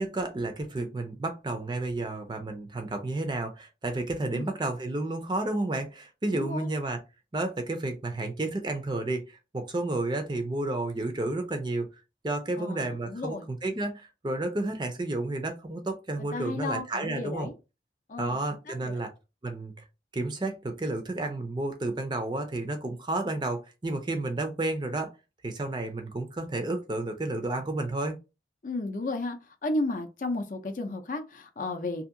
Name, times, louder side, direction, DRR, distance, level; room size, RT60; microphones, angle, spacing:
voice 1, 0.0-7.0 7.3-11.9 12.2-17.5 18.2-19.1 19.4-19.8 20.1-25.1 25.4-28.2, right 2 dB, 25° right, 0.4 m, -31 dB
voice 2, 6.3-6.7 12.6-13.5 16.3-17.5 18.1-18.4 18.7-19.0 28.6-29.4 29.6-32.0, left 2 dB, 45° left, 0.5 m, -33 dB
2.7 x 2.6 x 2.5 m
head